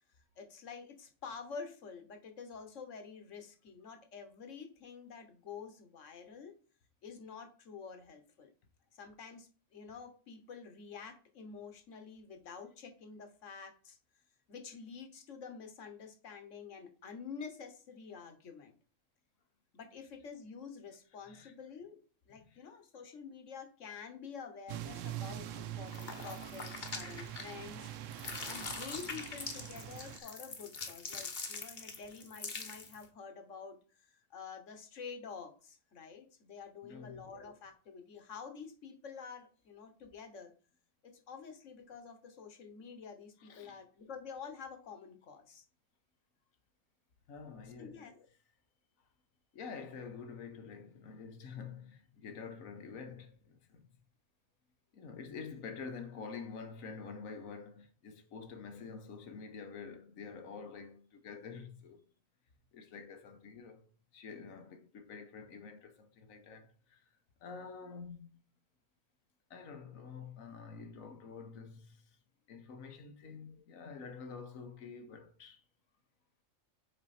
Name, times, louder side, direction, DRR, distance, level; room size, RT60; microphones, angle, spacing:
voice 1, 0.4-6.6 7.0-8.5 8.9-14.0 14.5-18.7 19.7-27.9 28.5-40.5 41.0-45.6 47.8-48.3, left 5 dB, 65° left, 1.4 m, -48 dB
sound 1, 24.7-30.2, right 11 dB, 75° right, 0.9 m, -44 dB
sound 2, 25.9-27.8 28.1-33.0, left 4 dB, 40° left, 1.0 m, -43 dB
voice 2, 36.8-37.3 43.4-43.8 47.3-47.9 49.5-53.9 54.9-62.0 62.7-63.9 64.1-67.0 67.4-68.4 69.5-72.2 72.5-75.6, left 5 dB, 90° left, 1.4 m, -48 dB
6.8 x 4.4 x 4.2 m
omnidirectional pair, 1.4 m